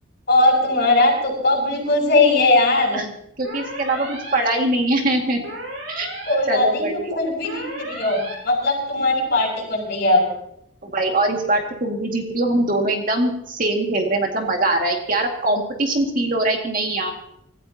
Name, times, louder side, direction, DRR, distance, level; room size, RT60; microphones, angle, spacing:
voice 1, 0.3-3.0 6.3-8.2 8.4-10.3, left 2 dB, 50° left, -1 dB, 7.7 m, -19 dB
voice 2, 3.4-5.4 5.9-6.1 6.5-7.2 10.8-17.1, right 2 dB, 45° right, 2 dB, 2.1 m, -22 dB
sound 1, 3.4-4.3 5.4-6.3 7.4-8.3, right 1 dB, 80° right, 5.3 m, -33 dB
26.0 x 14.5 x 2.9 m, 0.75 s
head